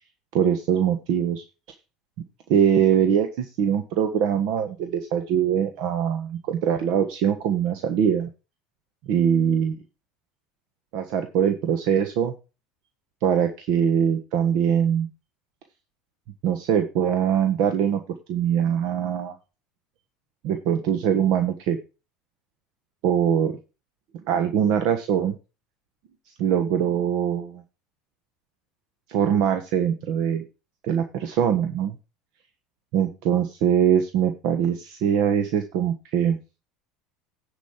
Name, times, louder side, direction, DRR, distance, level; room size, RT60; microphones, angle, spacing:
voice 1, 0.3-1.4 2.5-8.3 9.1-9.8 10.9-12.3 13.2-15.1 16.4-18.0 18.3-19.3 20.4-21.8 23.0-23.5 24.3-25.3 26.4-27.6 29.1-30.4 30.8-32.0 32.9-36.4, right 8 dB, 65° right, 7 dB, 1.3 m, -22 dB
10.0 x 5.2 x 5.7 m, 0.31 s
supercardioid pair, 120°, 0 cm